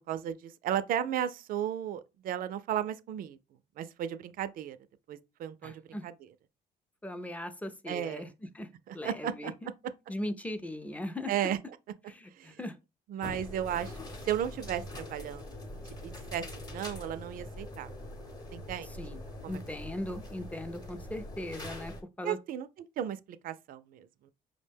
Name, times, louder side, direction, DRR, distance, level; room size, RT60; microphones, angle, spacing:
voice 1, 0.1-3.4 3.8-4.8 5.1-6.1 7.9-8.3 8.9-9.5 11.3-11.6 12.3-12.6 13.1-14.0 14.2-15.5 15.8-17.9 18.5-18.9 19.4-19.6 22.2-22.7 23.0-24.3, right 10 dB, 55° right, 0.4 m, -35 dB
voice 2, 5.6-6.1 7.0-8.7 8.9-9.7 10.1-11.3 12.1-12.8 13.3-13.4 19.0-19.2 19.5-22.4, left 1 dB, 10° left, 0.4 m, -39 dB
sound 1, 13.2-22.0, left 1 dB, 25° left, 0.8 m, -43 dB
4.9 x 2.1 x 3.3 m
cardioid pair, 110°, 17 cm